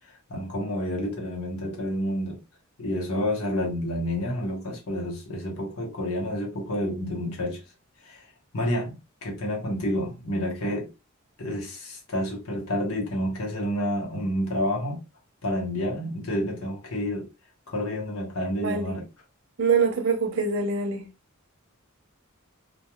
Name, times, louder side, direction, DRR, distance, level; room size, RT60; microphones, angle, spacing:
voice 1, 0.3-2.4 2.8-7.6 8.0-8.2 8.5-8.9 9.2-10.9 11.4-15.0 15.4-17.3 17.7-19.0, equal, 75° left, 1.1 m, -29 dB
voice 2, 18.6-18.9 19.6-21.1, right 5 dB, 60° right, 0.8 m, -24 dB
3.1 x 2.3 x 2.3 m
head